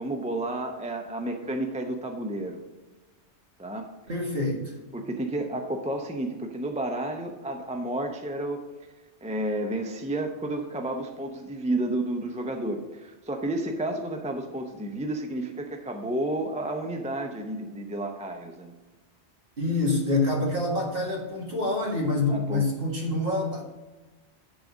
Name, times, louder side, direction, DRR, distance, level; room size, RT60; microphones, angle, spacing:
voice 1, 0.0-2.6 3.6-3.9 4.9-8.6 9.2-18.7 22.3-22.6, right 1 dB, 10° right, 4 dB, 0.6 m, -31 dB
voice 2, 4.1-4.7 19.6-23.6, left 2 dB, 50° right, -1 dB, 2.0 m, -26 dB
10.0 x 4.0 x 6.1 m, 1.2 s
omnidirectional pair, 1.2 m